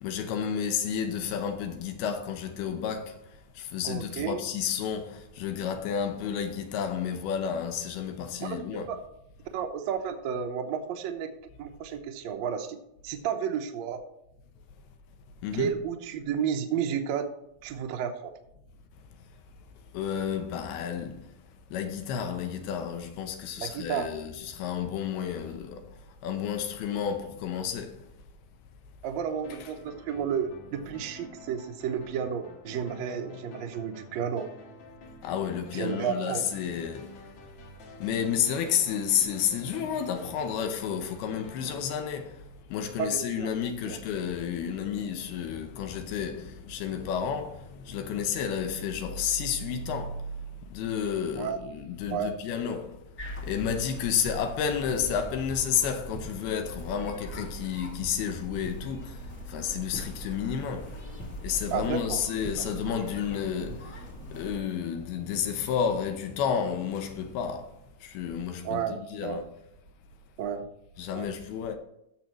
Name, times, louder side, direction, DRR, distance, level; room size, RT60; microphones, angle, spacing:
voice 1, 0.0-8.9 15.4-15.7 19.9-21.3 21.7-28.1 35.2-37.2 38.0-53.0 53.4-67.7 68.0-69.5 71.0-71.8, left 8 dB, 80° left, 2.7 m, -31 dB
voice 2, 3.8-4.4 8.4-8.6 8.9-9.0 9.5-11.3 11.6-12.7 13.0-14.0 15.5-17.3 17.6-18.3 23.6-24.1 29.0-34.4 35.7-36.4 43.0-43.5 43.8-44.0 51.4-51.6 52.1-52.3 61.7-62.2 68.6-69.4 70.4-70.7 71.1-71.3, right 8 dB, 75° right, 1.6 m, -32 dB
sound 1, 29.4-43.0, left 2 dB, 55° left, 2.0 m, -49 dB
sound 2, 53.2-64.6, equal, 35° left, 1.4 m, -41 dB
15.5 x 6.3 x 3.0 m
omnidirectional pair, 4.5 m